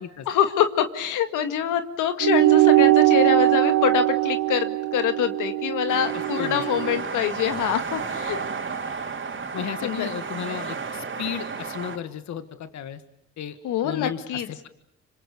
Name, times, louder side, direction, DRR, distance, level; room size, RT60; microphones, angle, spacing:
voice 1, 0.3-8.4 9.8-10.1 13.6-14.5, left 9 dB, 90° left, 8 dB, 2.0 m, -25 dB
sound 1, 2.2-7.0, right 17 dB, 75° right, 1.3 m, -21 dB
sound 2, 5.9-12.0, right 5 dB, 40° right, 3.7 m, -32 dB
voice 2, 6.1-6.6 9.5-13.0 13.4-13.6 13.8-14.7, left 9 dB, 65° left, 10 dB, 1.8 m, -34 dB
26.5 x 25.5 x 7.1 m, 0.71 s
cardioid pair, 90°, 30 cm